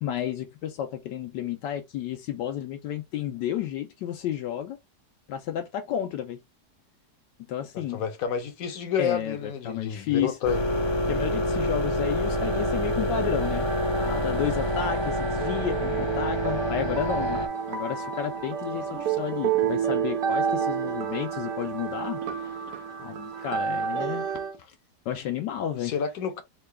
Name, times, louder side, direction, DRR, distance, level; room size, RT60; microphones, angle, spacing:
voice 1, 0.0-4.8 5.3-6.4 7.5-8.0 9.0-10.4 11.1-13.7 14.0-22.6 23.0-24.3 24.6-24.7 25.1-25.9, left 10 dB, 85° left, 1.3 m, -32 dB
voice 2, 7.9-10.6 25.8-26.4, left 7 dB, 65° left, 1.0 m, -30 dB
sound 1, 10.4-17.5, left 1 dB, 35° left, 0.4 m, -27 dB
sound 2, 12.2-24.6, right 7 dB, 60° right, 1.1 m, -30 dB
3.7 x 2.3 x 3.3 m
omnidirectional pair, 1.9 m